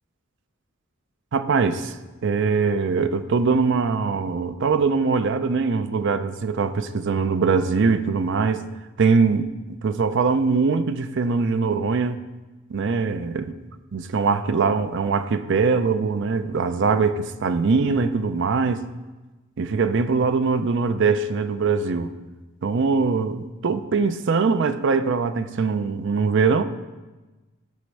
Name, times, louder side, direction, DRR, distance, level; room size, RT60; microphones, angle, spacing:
voice 1, 1.3-2.0 2.2-8.6 9.0-12.2 12.7-13.5 13.9-18.8 19.6-22.1 22.6-26.6, right 4 dB, 55° right, 11 dB, 0.5 m, -22 dB
11.5 x 4.4 x 6.3 m, 1.2 s
head